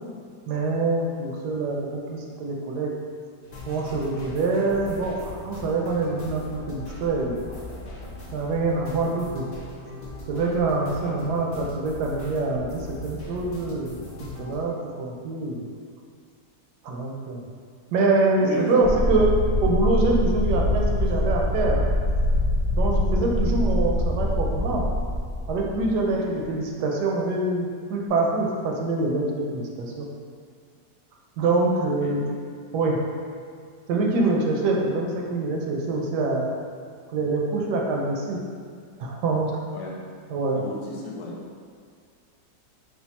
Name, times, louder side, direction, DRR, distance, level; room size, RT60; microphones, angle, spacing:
voice 1, 0.5-2.9 3.7-7.4 8.3-9.5 10.3-15.6 16.8-17.4 17.9-19.3 19.6-21.8 22.7-24.9 25.5-30.1 31.4-32.3 32.7-33.0 33.9-36.5 37.1-38.4 39.0-39.5 40.3-40.6, right 3 dB, 75° right, -1 dB, 1.1 m, -25 dB
sound 1, 3.4-14.6, left 2 dB, 40° left, 0.8 m, -40 dB
voice 2, 10.9-11.2 18.4-18.8 26.0-26.1 32.0-32.1 39.7-40.0 40.5-41.4, left 1 dB, 75° left, -2 dB, 1.1 m, -34 dB
sound 2, 18.8-26.4, left 1 dB, 50° right, 0.6 m, -24 dB
3.5 x 2.5 x 4.0 m, 2.1 s
omnidirectional pair, 1.9 m